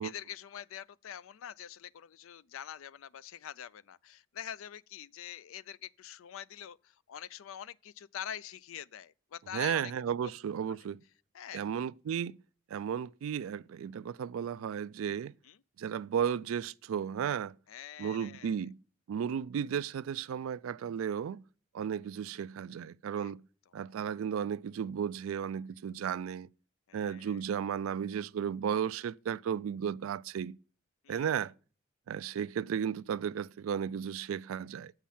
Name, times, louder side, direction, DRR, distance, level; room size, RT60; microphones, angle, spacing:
voice 1, 0.0-9.9 10.2-10.3 11.3-11.6 15.4-15.6 17.7-18.6 23.2-23.3 23.8-24.0 26.9-27.4 31.0-31.3, left 9 dB, 85° left, 0.4 m, -45 dB
voice 2, 9.5-11.0 11.5-12.3 12.7-15.3 15.8-17.5 18.0-18.8 19.1-21.4 21.7-23.4 23.7-26.5 26.9-30.6 31.1-31.5 32.1-34.9, right 8 dB, 85° right, 0.3 m, -34 dB
7.3 x 5.8 x 7.0 m
head